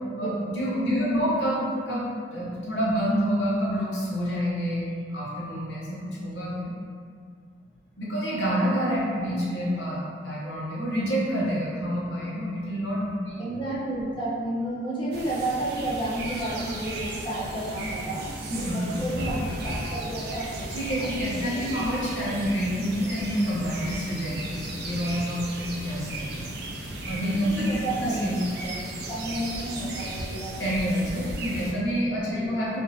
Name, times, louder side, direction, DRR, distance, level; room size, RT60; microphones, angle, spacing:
voice 1, 0.2-6.7 8.0-13.3 18.5-18.9 20.7-25.5 25.8-26.4 27.0-27.7 28.0-28.4 30.6-32.8, equal, 75° left, -6 dB, 1.0 m, -28 dB
voice 2, 0.9-1.3 9.1-9.3 13.4-18.4 18.7-20.6 21.0-21.9 27.5-28.2 28.6-28.7 29.1-30.6 32.3-32.5, right 1 dB, 30° left, -8 dB, 0.8 m, -31 dB
sound 1, 15.1-31.7, right 1 dB, 60° right, 0.5 m, -35 dB
3.7 x 2.5 x 2.7 m, 2.1 s
head